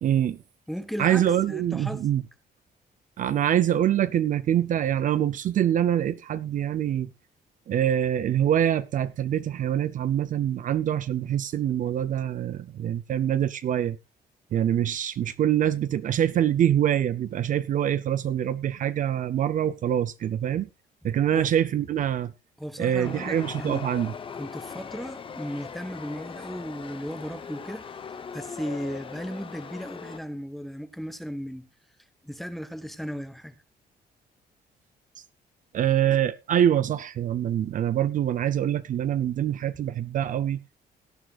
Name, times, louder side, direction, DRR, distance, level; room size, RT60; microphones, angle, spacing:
voice 1, 0.0-0.4 1.0-2.2 3.2-7.1 7.7-14.0 14.5-20.7 21.0-22.3 22.8-24.1 35.7-40.6, right 10 dB, 50° right, 0.6 m, -25 dB
voice 2, 0.7-2.1 21.3-21.5 22.6-23.9 24.4-28.0 28.3-31.7 32.2-33.6, equal, ahead, 0.9 m, -36 dB
Chatter / Subway metro underground, 23.0-30.2, left 6 dB, 30° left, 0.8 m, -40 dB
17.5 x 10.5 x 2.4 m
cardioid pair, 140°, 17 cm